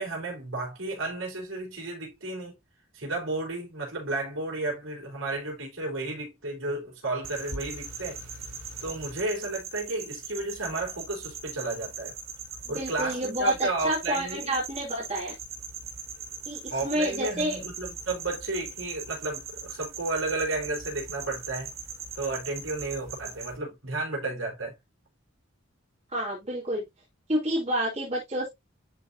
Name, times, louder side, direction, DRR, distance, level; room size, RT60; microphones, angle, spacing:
voice 1, 0.0-2.5 2.9-8.2 8.8-12.1 12.7-14.6 16.7-21.7 22.1-24.7, right 2 dB, 70° right, 4.4 m, -32 dB
sound 1, 7.2-23.6, right 5 dB, 85° right, 4.1 m, -40 dB
voice 2, 12.7-15.3 16.5-17.6 26.1-26.8 27.3-28.5, right 1 dB, 30° right, 2.4 m, -29 dB
11.0 x 4.2 x 2.7 m
head